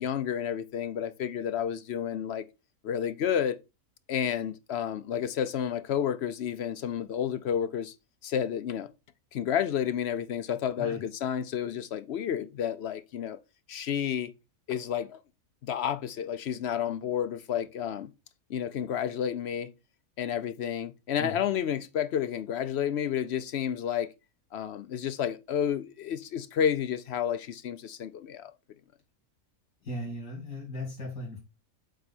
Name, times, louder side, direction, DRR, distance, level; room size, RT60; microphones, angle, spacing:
voice 1, 0.0-2.4 2.8-3.6 4.1-7.9 8.2-8.9 9.3-13.4 13.7-14.3 14.7-15.2 15.6-18.1 18.5-19.7 20.2-24.1 24.5-28.5, left 9 dB, 60° left, 0.7 m, -30 dB
voice 2, 29.8-31.4, left 1 dB, 80° left, 2.6 m, -37 dB
7.9 x 4.5 x 4.1 m
omnidirectional pair, 1.5 m